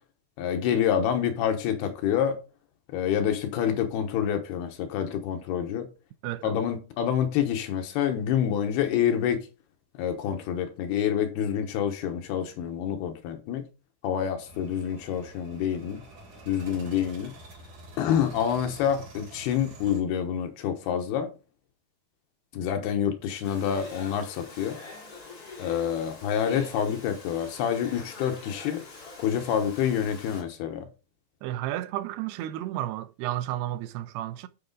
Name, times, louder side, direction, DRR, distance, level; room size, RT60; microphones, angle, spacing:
voice 1, 0.4-2.4 2.9-5.9 6.4-9.4 10.0-13.7 14.0-16.0 16.5-17.3 18.0-21.3 22.5-24.8 25.6-28.8 29.2-30.9, left 9 dB, 75° left, 3.0 m, -27 dB
voice 2, 6.2-6.5 31.4-34.5, right 13 dB, 85° right, 2.5 m, -32 dB
sound 1, 14.5-20.0, right 2 dB, 55° right, 4.6 m, -47 dB
Domestic sounds home sounds, 23.4-30.4, left 3 dB, 30° left, 1.9 m, -45 dB
12.0 x 4.9 x 3.8 m
omnidirectional pair, 4.8 m